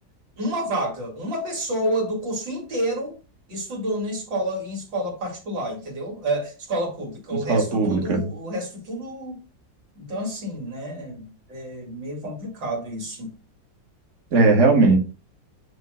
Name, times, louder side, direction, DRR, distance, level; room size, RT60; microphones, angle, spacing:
voice 1, 0.4-3.1 3.5-9.4 10.0-13.3, right 1 dB, 85° right, 3.3 m, -29 dB
voice 2, 7.3-8.3 14.3-15.0, right 3 dB, 40° right, 1.7 m, -18 dB
9.1 x 3.1 x 5.0 m
omnidirectional pair, 2.0 m